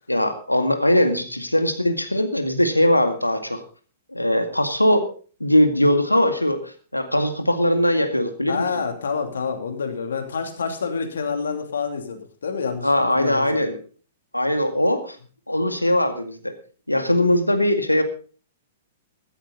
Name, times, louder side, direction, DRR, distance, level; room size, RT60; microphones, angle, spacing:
voice 1, 0.1-3.6 4.1-5.1 5.4-8.8 12.8-13.8 14.3-15.2 15.5-16.5 16.9-18.0, left 1 dB, 90° left, 8 dB, 2.0 m, -20 dB
voice 2, 8.5-13.6, left 5 dB, 65° left, 6 dB, 2.9 m, -28 dB
14.5 x 14.0 x 4.0 m, 0.40 s
figure-of-eight pair, 105°, 0 cm